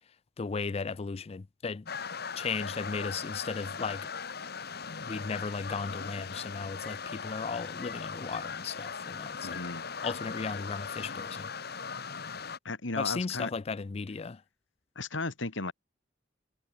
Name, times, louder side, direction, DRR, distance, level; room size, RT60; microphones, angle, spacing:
voice 1, 0.4-1.9 2.4-4.1 4.8-9.6 10.0-11.5 13.0-14.4, left 5 dB, 30° left, 0.4 m, -36 dB
sound 1, 1.9-12.6, left 5 dB, 55° left, 2.4 m, -39 dB
voice 2, 9.4-9.8 12.6-13.5 15.0-15.7, left 3 dB, 75° left, 2.2 m, -35 dB
head